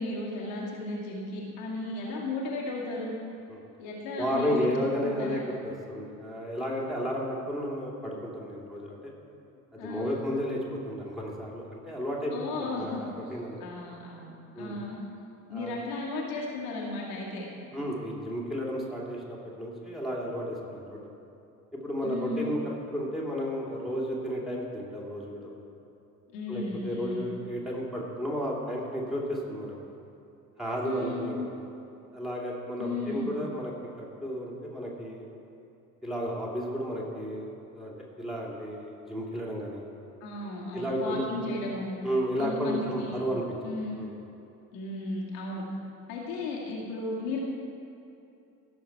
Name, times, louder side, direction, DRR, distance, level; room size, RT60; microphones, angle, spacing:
voice 1, 0.0-3.2 3.8-4.7 5.0-5.4 9.8-10.1 12.3-13.0 13.3-15.0 15.5-17.5 22.0-22.5 26.3-27.3 30.8-31.2 32.8-33.3 40.2-42.0 42.4-43.2 43.6-44.0 44.7-45.6 46.1-47.4, left 2 dB, 65° left, -4 dB, 2.0 m, -35 dB
voice 2, 4.2-9.1 9.7-12.3 12.6-13.6 14.6-14.8 15.5-15.7 17.7-21.0 21.7-25.5 26.5-29.8 30.6-31.5 32.1-35.3 36.0-37.5 37.7-39.8 40.7-41.2 42.0-44.1, equal, ahead, -3 dB, 2.6 m, -33 dB
16.5 x 6.5 x 4.6 m, 2.8 s
figure-of-eight pair, 55°, 43 cm